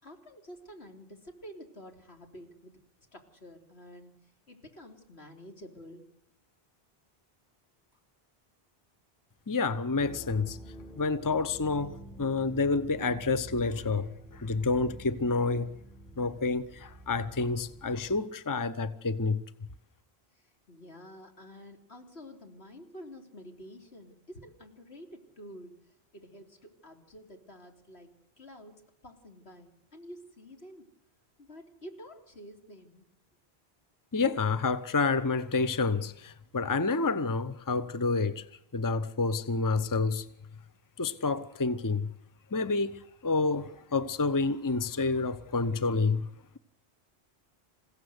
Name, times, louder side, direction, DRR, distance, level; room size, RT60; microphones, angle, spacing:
voice 1, 0.0-2.7 3.1-4.2 4.5-6.0 20.7-25.7 26.1-30.9 31.4-33.0, equal, 80° left, 3.8 m, -49 dB
voice 2, 9.5-10.6 11.0-15.7 16.2-19.4 34.1-38.4 38.7-40.2 41.0-42.1 42.5-46.3, left 3 dB, 20° left, 0.8 m, -29 dB
sound 1, 10.0-18.2, right 1 dB, ahead, 4.1 m, -48 dB
28.5 x 16.5 x 8.1 m
omnidirectional pair, 1.1 m